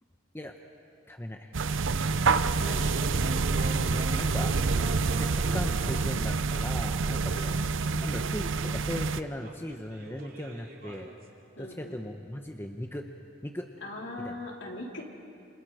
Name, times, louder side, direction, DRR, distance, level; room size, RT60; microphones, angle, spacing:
voice 1, 1.1-1.5 3.1-3.2 3.6-4.5 5.1-7.5 7.9-11.1 11.6-13.1 13.4-13.7 14.2-14.3, left 1 dB, 10° left, 3 dB, 1.0 m, -38 dB
sound 1, 1.5-9.2, right 4 dB, 75° right, 0.7 m, -27 dB
voice 2, 2.5-3.0 7.3-7.6 11.6-12.0 13.8-15.0, left 2 dB, 65° left, -2 dB, 4.0 m, -40 dB
sound 2, 2.9-6.2 6.6-8.8 9.4-11.2, right 1 dB, 45° right, 2.8 m, -42 dB
29.5 x 28.0 x 5.0 m, 2.5 s
head